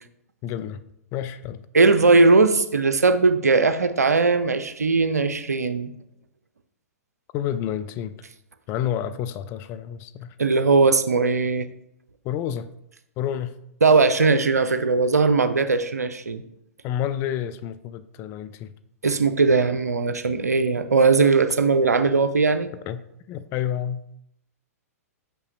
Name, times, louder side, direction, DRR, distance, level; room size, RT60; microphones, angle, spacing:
voice 1, 0.4-0.8 1.1-1.6 7.3-8.2 8.7-10.3 12.2-12.7 13.2-13.5 16.8-18.7 22.9-23.0 23.3-24.0, left 10 dB, 30° left, 12 dB, 0.3 m, -29 dB
voice 2, 1.7-5.9 10.4-11.7 13.8-16.4 19.0-22.7, right 4 dB, 80° right, 10 dB, 0.5 m, -19 dB
5.8 x 5.4 x 3.0 m, 0.79 s
figure-of-eight pair, 105°, 9 cm